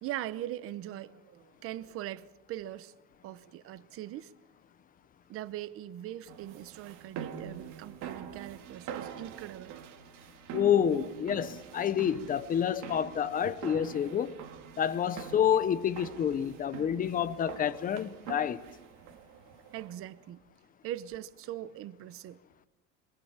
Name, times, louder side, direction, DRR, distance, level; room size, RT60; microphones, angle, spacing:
voice 1, 0.0-2.9 3.2-4.3 5.3-9.7 10.9-11.1 13.4-13.6 19.7-20.4 20.8-22.4, right 13 dB, 40° right, 0.9 m, -41 dB
sound 1, 6.3-20.2, right 8 dB, 60° right, 2.9 m, -45 dB
voice 2, 10.5-14.3 14.8-18.6, left 9 dB, 25° left, 0.8 m, -28 dB
27.0 x 24.0 x 7.4 m
cardioid pair, 170°, 34 cm